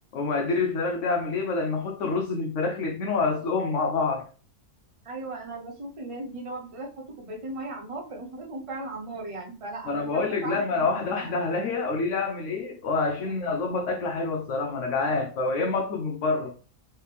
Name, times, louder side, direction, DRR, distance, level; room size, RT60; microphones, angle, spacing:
voice 1, 0.1-4.3 9.9-16.5, left 3 dB, 65° left, 0.9 m, -27 dB
voice 2, 5.0-11.7 13.2-13.3, right 2 dB, 30° right, 0.7 m, -38 dB
4.6 x 3.2 x 3.4 m
omnidirectional pair, 1.5 m